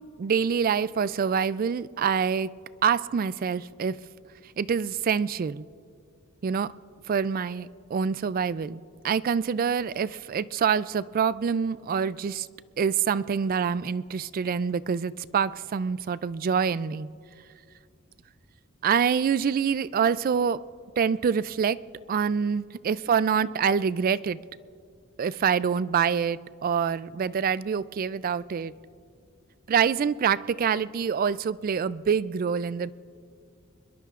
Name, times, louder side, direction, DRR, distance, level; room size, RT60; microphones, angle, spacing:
voice 1, 0.0-2.5 2.8-4.0 4.6-5.6 6.4-6.7 7.1-12.5 12.8-17.1 18.8-20.6 21.0-21.8 22.1-24.4 25.2-28.7 29.7-32.9, right 7 dB, 40° right, 17 dB, 0.3 m, -26 dB
25.0 x 22.0 x 2.4 m, 2.3 s
head